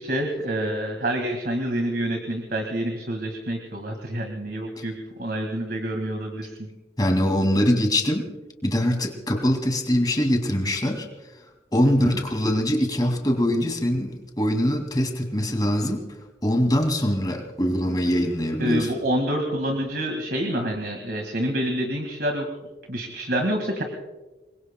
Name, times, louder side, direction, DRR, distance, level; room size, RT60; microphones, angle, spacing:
voice 1, 0.0-4.9 5.2-6.7 11.8-12.2 18.6-22.5 22.9-23.8, right 1 dB, 60° right, 3 dB, 1.9 m, -27 dB
voice 2, 7.0-8.3 8.6-11.1 11.7-16.0 16.4-18.9, equal, 20° left, 4 dB, 2.3 m, -23 dB
27.0 x 22.0 x 2.2 m, 1.2 s
head